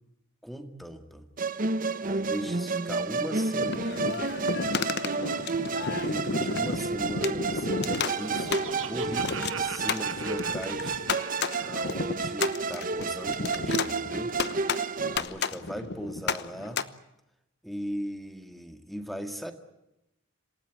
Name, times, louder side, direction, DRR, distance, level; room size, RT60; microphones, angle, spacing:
voice 1, 0.4-1.3 2.1-4.2 5.7-11.0 11.6-14.3 15.1-16.9 17.6-19.5, equal, ahead, 7 dB, 2.0 m, -38 dB
Musical instrument, 1.4-15.2, right 4 dB, 40° right, 1.0 m, -31 dB
sound 1, 3.6-16.8, left 4 dB, 55° left, 1.0 m, -32 dB
Laughter, 7.4-11.9, right 6 dB, 70° right, 1.6 m, -42 dB
27.5 x 18.0 x 9.3 m, 0.89 s
head